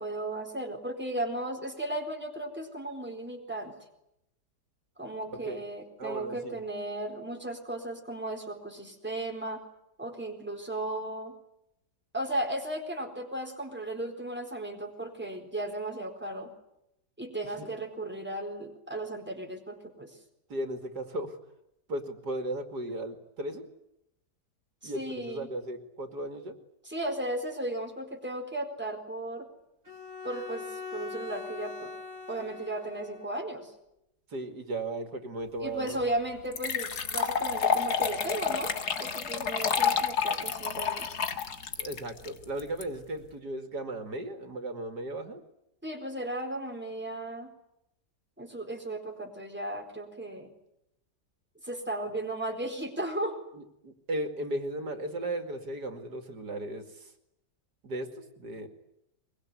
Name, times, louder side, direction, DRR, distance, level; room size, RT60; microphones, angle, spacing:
voice 1, 0.0-3.8 5.0-9.6 10.0-11.4 12.1-16.5 17.2-20.2 24.8-25.5 26.8-29.5 30.2-31.9 32.3-33.7 35.6-38.7 39.0-41.1 45.8-47.5 48.4-50.5 51.6-53.4, right 1 dB, 5° right, 2 dB, 4.4 m, -35 dB
voice 2, 6.0-6.6 17.4-17.7 20.5-21.4 21.9-23.7 24.8-26.6 34.3-36.0 41.8-45.4 53.5-57.1 57.8-58.7, right 1 dB, 75° right, 6 dB, 2.9 m, -36 dB
Bowed string instrument, 29.8-33.4, left 4 dB, 50° right, 2.9 m, -42 dB
sound 1, 35.9-36.0 36.5-42.8, left 7 dB, 70° left, 2.1 m, -29 dB
23.0 x 23.0 x 9.8 m, 0.84 s
omnidirectional pair, 1.8 m